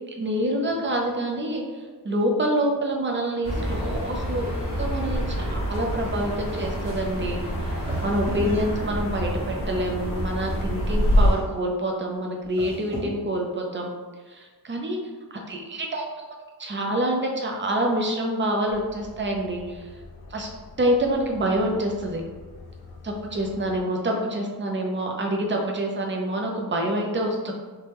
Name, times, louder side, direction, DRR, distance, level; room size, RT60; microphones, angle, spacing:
voice 1, 0.2-13.9 14.3-15.0 15.3-16.2 16.6-19.9 20.3-20.5 20.8-22.2 23.0-27.5, right 1 dB, 30° right, 1 dB, 0.5 m, -27 dB
sound 1, 3.4-11.3, equal, 45° left, 1.4 m, -26 dB
sound 2, 6.4-7.1 7.8-9.1 11.0-11.7 12.4-13.3, equal, 15° right, 0.8 m, -35 dB
sound 3, 18.7-23.8, left 3 dB, 70° left, 0.6 m, -46 dB
3.3 x 2.2 x 2.9 m, 1.3 s
wide cardioid pair, 110°, 38 cm